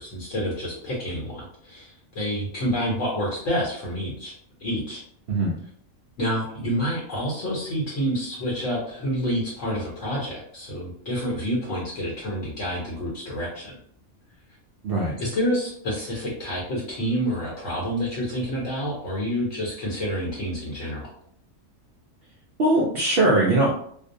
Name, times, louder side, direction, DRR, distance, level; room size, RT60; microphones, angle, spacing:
voice 1, 0.0-4.3 4.6-5.0 6.2-13.7 15.2-21.1, equal, 65° left, -4 dB, 1.0 m, -28 dB
voice 2, 22.6-23.7, right 2 dB, 70° right, -4 dB, 0.5 m, -20 dB
2.5 x 2.0 x 2.6 m, 0.64 s
omnidirectional pair, 1.5 m